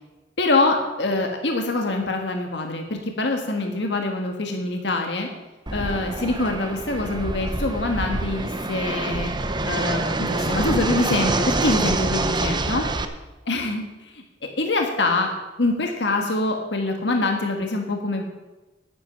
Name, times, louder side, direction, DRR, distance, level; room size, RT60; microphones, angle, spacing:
voice 1, 0.4-5.3 5.7-9.3 9.6-12.8 13.5-15.3 15.6-18.2, left 2 dB, 70° left, 3 dB, 1.6 m, -24 dB
Fixed-wing aircraft airplane, 5.7-13.0, right 2 dB, 25° right, 0.8 m, -26 dB
11.0 x 10.5 x 5.9 m, 1.1 s
head